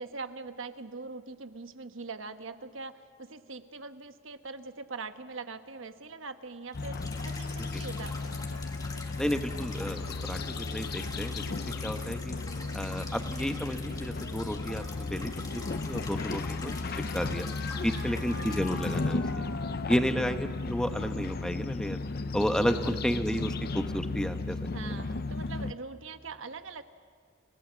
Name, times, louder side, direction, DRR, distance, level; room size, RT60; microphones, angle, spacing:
voice 1, 0.0-7.0 7.2-8.7 17.9-18.4 19.9-20.4 22.8-23.0 24.7-26.8, right 4 dB, 80° right, 9 dB, 1.2 m, -42 dB
sound 1, 6.7-25.7, left 3 dB, 50° left, 0.6 m, -35 dB
sound 2, 6.7-19.1, left 3 dB, 20° left, 1.8 m, -45 dB
sound 3, 7.9-21.5, left 3 dB, 85° left, 1.5 m, -44 dB
voice 2, 9.2-11.5 11.8-12.3 12.7-16.8 17.1-17.5 17.8-19.2 19.8-22.0 22.3-24.6 24.8-25.0, equal, 5° left, 8 dB, 1.0 m, -32 dB
29.5 x 18.5 x 7.5 m, 2.1 s
head